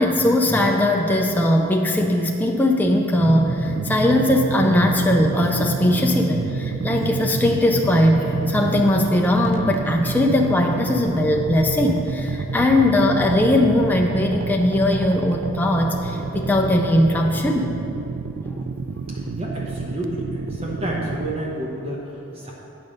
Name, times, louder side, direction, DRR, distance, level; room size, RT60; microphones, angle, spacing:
voice 1, 0.0-8.2 8.5-17.8 18.4-18.6, left 1 dB, 10° left, 1 dB, 0.4 m, -19 dB
sound 1, 3.2-21.3, right 4 dB, 60° right, 0.4 m, -28 dB
Cough, 5.3-6.2 6.9-7.2 8.2-8.4 8.6-8.9, equal, 40° left, 1.2 m, -39 dB
voice 2, 19.1-22.5, right 1 dB, 30° right, -3 dB, 0.9 m, -30 dB
9.0 x 5.3 x 6.4 m, 2.9 s
head